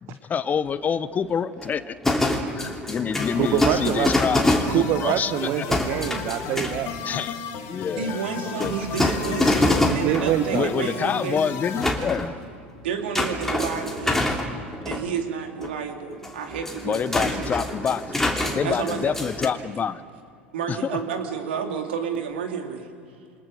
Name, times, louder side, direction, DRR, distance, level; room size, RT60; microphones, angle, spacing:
voice 1, 0.0-2.0 2.5-5.6 7.0-8.8 10.5-12.3 16.8-18.0 18.5-20.0 20.7-21.0, left 7 dB, 25° left, 15 dB, 0.9 m, -27 dB
sound 1, 0.7-1.0 1.4-5.2 5.7-7.0 8.6-10.4 11.1-12.4 13.1-15.0 15.6-15.7 16.1-19.5, left 1 dB, 5° left, 2.8 m, -25 dB
sound 2, 3.2-11.9, left 8 dB, 50° left, 2.4 m, -35 dB
voice 2, 3.4-4.1 4.7-6.9 9.8-10.7, right 12 dB, 45° right, 10 dB, 1.0 m, -25 dB
voice 3, 8.0-11.4 12.8-14.4 14.8-17.5 18.6-19.1 20.5-22.9, right 7 dB, 70° right, 4 dB, 2.7 m, -30 dB
28.0 x 24.0 x 6.6 m, 2.4 s
figure-of-eight pair, 80°, 6 cm